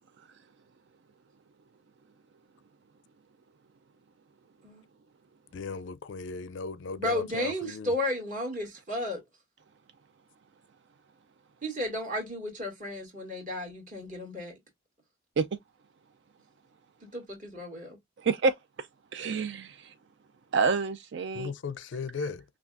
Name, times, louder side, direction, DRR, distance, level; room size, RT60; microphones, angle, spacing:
voice 1, 5.5-7.9 21.3-22.4, left 5 dB, 65° left, 0.4 m, -36 dB
voice 2, 7.0-9.2 11.6-14.5 17.0-18.0, left 1 dB, 40° right, 1.9 m, -33 dB
voice 3, 18.2-18.9 19.1-19.9 20.5-21.5, right 4 dB, 60° right, 0.4 m, -28 dB
5.8 x 2.3 x 2.4 m
head